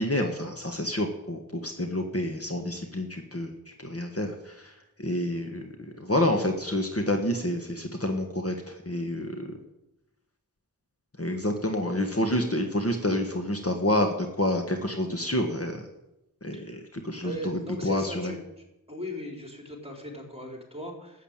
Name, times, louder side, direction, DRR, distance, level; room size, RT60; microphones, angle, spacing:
voice 1, 0.0-9.6 11.2-15.9 16.4-18.3, left 1 dB, 40° left, 4 dB, 1.6 m, -29 dB
voice 2, 17.2-18.4 18.9-21.2, equal, 15° right, 1 dB, 4.2 m, -38 dB
13.0 x 8.4 x 8.9 m, 0.90 s
wide cardioid pair, 50°, 36 cm